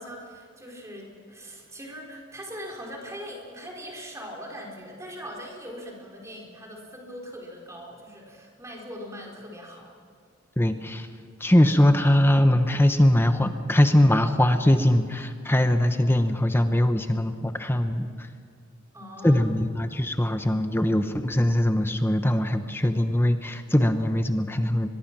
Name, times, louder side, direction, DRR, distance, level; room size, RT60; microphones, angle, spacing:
voice 1, 0.0-9.9 18.9-19.6, equal, 15° right, -1 dB, 4.5 m, -41 dB
voice 2, 10.6-11.1 11.4-18.3 19.2-24.9, left 1 dB, 10° left, 8 dB, 0.9 m, -21 dB
23.5 x 22.0 x 6.1 m, 2.1 s
head